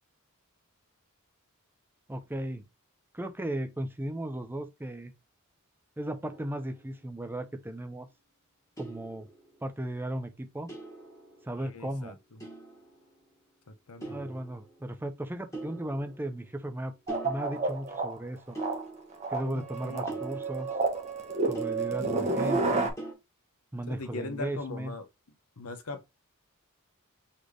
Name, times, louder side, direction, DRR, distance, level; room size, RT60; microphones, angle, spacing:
voice 1, 2.1-2.6 3.1-5.1 6.0-8.1 8.8-9.3 9.6-10.7 11.4-12.1 14.0-16.9 17.2-18.6 19.3-20.7 21.5-22.9 23.7-24.9, right 1 dB, 10° right, 0.5 m, -36 dB
sound 1, 6.3-7.3 8.8-9.8 10.7-11.9 12.4-13.3 14.0-15.0 15.5-16.8 17.1-18.1 18.5-19.5 20.1-22.5 23.0-23.1, right 2 dB, 15° left, 1.4 m, -44 dB
voice 2, 11.6-12.4 13.7-14.2 19.4-20.2 23.9-25.1 25.6-26.0, left 2 dB, 85° left, 0.9 m, -40 dB
sound 2, 17.1-18.1 18.5-22.9, right 3 dB, 30° right, 0.9 m, -30 dB
4.1 x 3.3 x 3.2 m
head